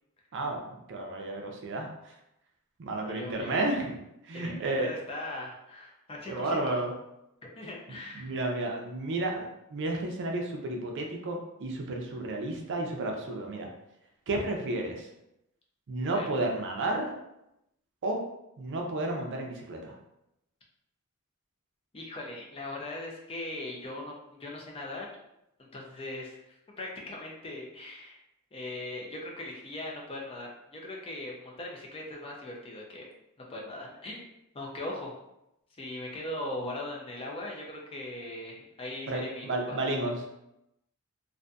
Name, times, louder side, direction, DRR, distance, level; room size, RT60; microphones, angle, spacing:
voice 1, 0.3-2.1 2.8-4.0 4.2-4.9 6.3-6.9 8.1-13.7 14.3-15.1 15.9-17.1 18.0-18.2 18.6-20.0 39.1-40.3, right 2 dB, 55° right, 2 dB, 0.5 m, -32 dB
voice 2, 3.0-3.6 4.3-6.8 7.6-8.3 16.1-16.3 21.9-25.2 25.7-28.2 28.5-33.1 33.5-34.2 34.5-35.2 35.8-39.8, left 1 dB, 25° left, -2 dB, 0.4 m, -39 dB
2.5 x 2.5 x 2.2 m, 0.85 s
head